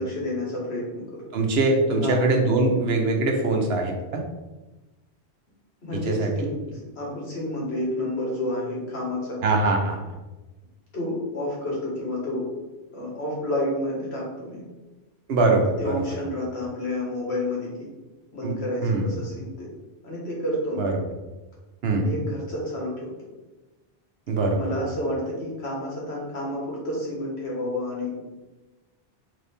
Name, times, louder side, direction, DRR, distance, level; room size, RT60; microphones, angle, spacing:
voice 1, 0.0-1.2 1.9-2.2 5.8-9.4 10.9-12.5 12.9-14.6 15.8-17.9 18.3-19.7 20.0-20.9 22.0-23.1 24.5-28.3, left 1 dB, 75° left, -4 dB, 1.8 m, -30 dB
voice 2, 1.3-4.2 5.9-6.5 9.4-10.0 15.3-16.1 18.4-18.5 18.8-19.1 20.8-21.0 21.8-22.2 24.3-24.7, right 2 dB, 70° right, 2 dB, 1.0 m, -22 dB
3.9 x 3.5 x 3.4 m, 1.1 s
omnidirectional pair, 1.1 m